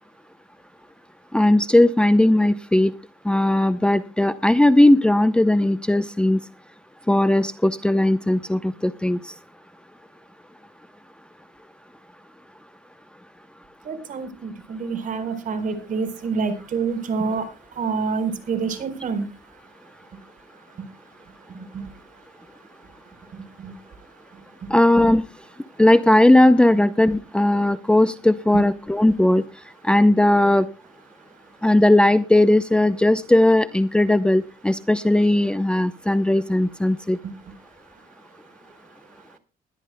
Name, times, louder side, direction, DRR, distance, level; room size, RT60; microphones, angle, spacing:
voice 1, 1.3-2.9 3.3-6.4 7.1-9.2 24.7-25.2 25.8-29.4 29.8-30.7 31.6-37.2, left 1 dB, 5° left, 11 dB, 0.8 m, -17 dB
voice 2, 13.8-17.5 17.8-19.2 23.6-23.7, right 5 dB, 50° right, 11 dB, 4.2 m, -27 dB
21.5 x 13.5 x 2.2 m, 0.33 s
cardioid pair, 110°, 17 cm